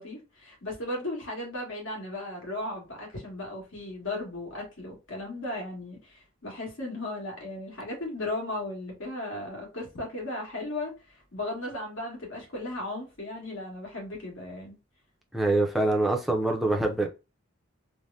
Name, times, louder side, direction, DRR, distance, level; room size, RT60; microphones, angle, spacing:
voice 1, 0.0-14.8, left 1 dB, 70° left, 1.6 m, -36 dB
voice 2, 15.3-17.1, right 2 dB, ahead, 0.5 m, -24 dB
3.3 x 2.1 x 2.6 m
head